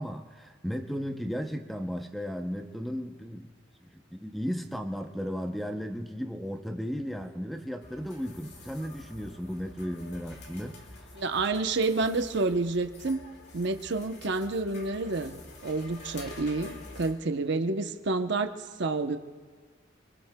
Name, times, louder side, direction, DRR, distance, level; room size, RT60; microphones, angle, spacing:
voice 1, 0.0-3.5 3.9-10.8, equal, ahead, 5 dB, 0.6 m, -35 dB
sound 1, 7.8-17.1, left 2 dB, 55° left, 2.3 m, -48 dB
voice 2, 11.2-13.2 13.5-19.2, right 3 dB, 60° right, 7 dB, 0.8 m, -29 dB
28.5 x 22.5 x 2.2 m, 1.5 s
head